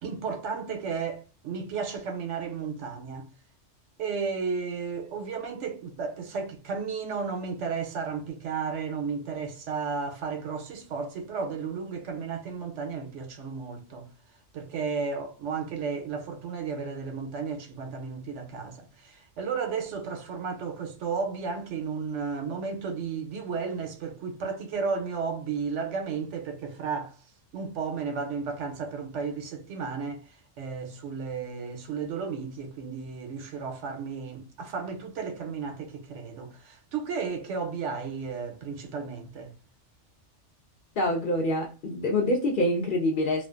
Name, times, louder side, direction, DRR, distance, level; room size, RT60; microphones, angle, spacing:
voice 1, 0.0-3.3 4.0-14.1 14.5-27.2 27.5-39.5, right 5 dB, 75° right, 1.0 m, -33 dB
voice 2, 41.0-43.5, left 1 dB, 55° left, 0.6 m, -26 dB
2.4 x 2.3 x 2.3 m
omnidirectional pair, 1.2 m